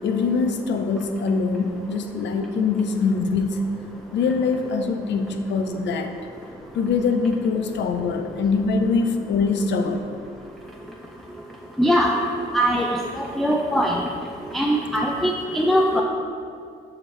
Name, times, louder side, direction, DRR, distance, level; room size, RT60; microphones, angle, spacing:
voice 1, 0.0-3.6 4.1-6.1 6.7-10.0, left 4 dB, 65° left, 6 dB, 0.6 m, -23 dB
voice 2, 11.8-12.1 12.5-14.0 14.5-16.0, equal, ahead, -1 dB, 0.4 m, -21 dB
7.2 x 4.8 x 3.2 m, 2.3 s
cardioid pair, 90°, 20 cm